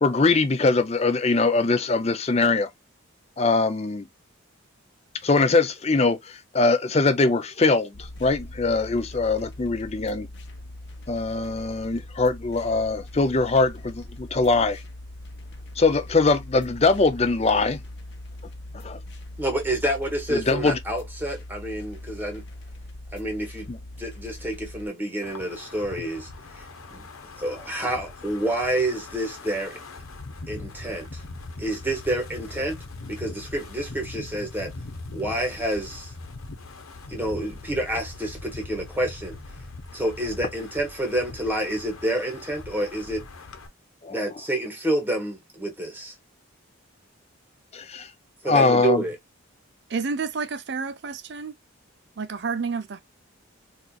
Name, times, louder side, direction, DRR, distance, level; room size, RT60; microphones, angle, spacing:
voice 1, 0.0-2.7 3.4-4.1 5.2-10.3 11.1-14.8 15.8-17.8 18.8-19.0 20.3-20.8 23.7-23.8 44.0-44.2 47.7-48.1 48.4-49.0, left 3 dB, 30° left, 0.5 m, -22 dB
sound 1, 7.9-24.9, left 1 dB, 55° left, 0.9 m, -41 dB
voice 2, 19.4-22.4 23.1-23.7 24.0-26.3 26.6-26.7 26.9-27.1 27.4-29.8 30.5-31.2 31.6-32.8 33.1-34.7 35.1-36.1 37.1-39.4 39.9-43.3 44.1-46.1 48.4-49.2, right 1 dB, 10° right, 1.2 m, -28 dB
Wind, 25.2-43.7, left 3 dB, 90° left, 1.0 m, -41 dB
voice 3, 49.9-51.5 52.2-53.0, right 5 dB, 55° right, 0.5 m, -30 dB
4.3 x 2.5 x 2.3 m
head